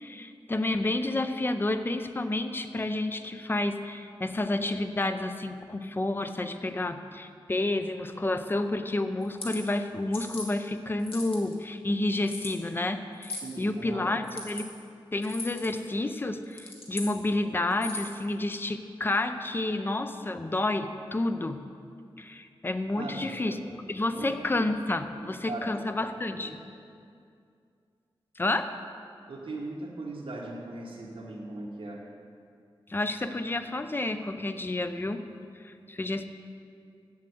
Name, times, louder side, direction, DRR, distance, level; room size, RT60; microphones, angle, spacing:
voice 1, 0.0-14.7 15.1-21.6 22.2-23.6 23.9-26.5 28.4-28.7 32.9-35.2 35.6-36.3, left 2 dB, 25° left, 9 dB, 0.5 m, -30 dB
sound 1, 9.2-9.6 10.1-10.5 11.0-11.5 12.3-12.5 13.2-13.5 14.2-14.6 15.2-15.7 16.4-17.1 17.7-18.2, left 3 dB, 75° left, 1.6 m, -39 dB
voice 2, 13.4-14.1 22.9-23.6 24.1-24.4 25.2-25.7 26.4-26.6 29.3-32.0, right 2 dB, 75° right, -3 dB, 1.1 m, -39 dB
7.6 x 7.3 x 7.7 m, 2.4 s
wide cardioid pair, 125°, 9 cm